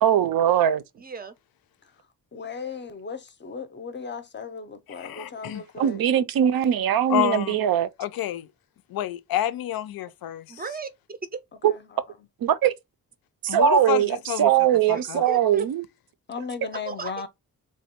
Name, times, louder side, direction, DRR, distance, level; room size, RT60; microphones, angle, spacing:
voice 1, 0.0-0.8 5.8-7.9 11.6-11.7 12.4-12.7 13.4-15.8, right 9 dB, 80° right, 0.5 m, -21 dB
voice 2, 1.0-1.3 10.5-11.4 14.9-15.6 16.9-17.3, right 4 dB, 25° right, 0.4 m, -36 dB
voice 3, 2.3-6.0 11.7-11.8 16.3-17.3, left 5 dB, 35° left, 0.5 m, -36 dB
voice 4, 4.9-5.6 7.1-7.6 8.0-8.5 8.9-10.4 13.5-14.5 14.9-15.2, left 12 dB, 85° left, 0.5 m, -28 dB
3.3 x 2.2 x 4.2 m
wide cardioid pair, 165°, 35 cm